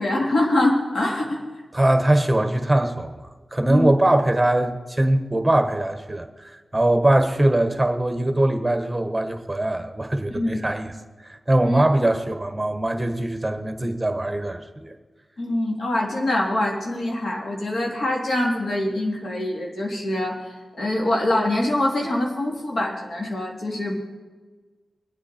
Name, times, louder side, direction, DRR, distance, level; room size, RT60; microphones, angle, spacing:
voice 1, 0.0-1.5 3.6-3.9 10.3-10.6 11.6-11.8 15.4-23.9, left 1 dB, 75° left, -1 dB, 2.9 m, -24 dB
voice 2, 1.7-3.1 3.5-10.9 11.3-14.9, right 1 dB, 20° right, 6 dB, 1.3 m, -21 dB
22.0 x 8.2 x 4.4 m, 1.3 s
cardioid pair, 50°, 0 cm